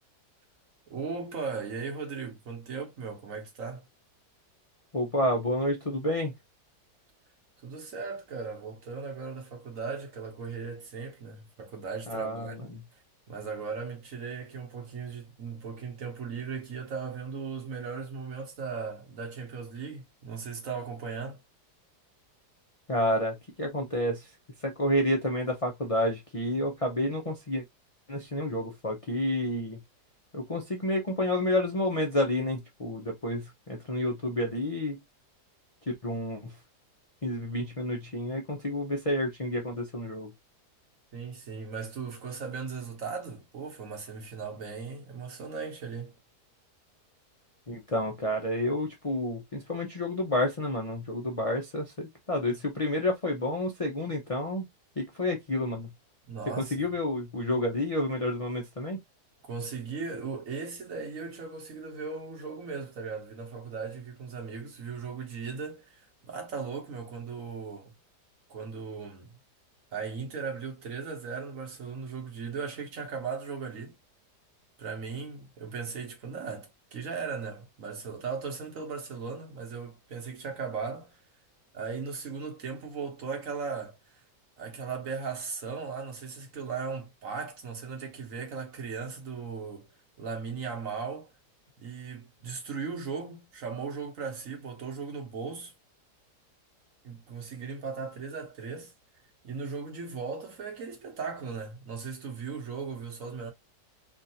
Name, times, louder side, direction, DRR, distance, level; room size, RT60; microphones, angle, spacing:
voice 1, 0.9-3.8 7.6-12.7 13.3-21.4 41.1-46.1 56.3-56.9 59.4-67.9 68.5-69.4 69.9-73.9 74.8-81.2 81.7-84.2 84.6-89.9 90.2-91.3 91.8-95.7 97.0-98.9 99.4-103.5, right 5 dB, 55° right, 1.3 m, -37 dB
voice 2, 4.9-6.3 12.1-12.8 22.9-24.3 24.6-27.6 28.1-29.8 30.3-35.0 35.9-36.5 37.2-40.3 47.7-54.7 55.0-55.9 56.6-59.0, left 1 dB, 50° left, 0.4 m, -30 dB
3.6 x 2.5 x 2.7 m
omnidirectional pair, 1.8 m